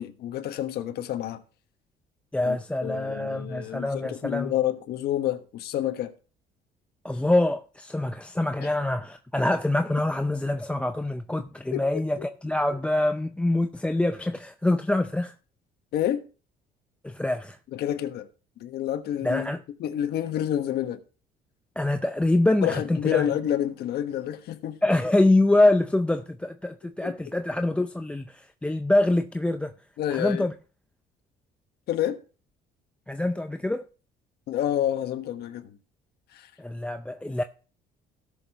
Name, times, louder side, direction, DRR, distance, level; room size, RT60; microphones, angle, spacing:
voice 1, 0.0-1.4 2.4-2.6 2.8-6.1 8.6-8.7 11.7-12.3 15.9-16.2 17.7-18.3 18.6-19.5 19.8-21.0 22.6-24.8 27.0-27.1 30.0-30.5 31.9-32.2 34.5-35.7 36.3-36.5, left 11 dB, 70° left, 1.3 m, -29 dB
voice 2, 2.3-4.5 7.0-15.3 17.0-17.6 19.2-19.6 21.8-23.3 24.8-29.7 30.1-30.5 33.1-33.8 36.6-37.4, left 2 dB, 5° left, 0.5 m, -25 dB
17.5 x 6.6 x 2.9 m
cardioid pair, 110°, 17 cm